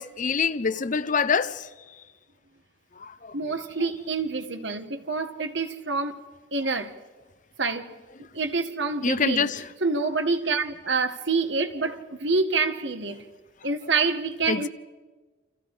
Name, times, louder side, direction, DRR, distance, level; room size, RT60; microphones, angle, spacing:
voice 1, 0.0-1.7 3.0-3.3 9.0-9.6 14.5-14.7, left 5 dB, 45° left, 0.7 m, -25 dB
voice 2, 3.3-6.2 6.5-6.9 7.6-7.9 8.3-9.5 9.8-13.2 13.6-14.7, right 4 dB, 70° right, 1.8 m, -27 dB
29.0 x 28.0 x 5.0 m
head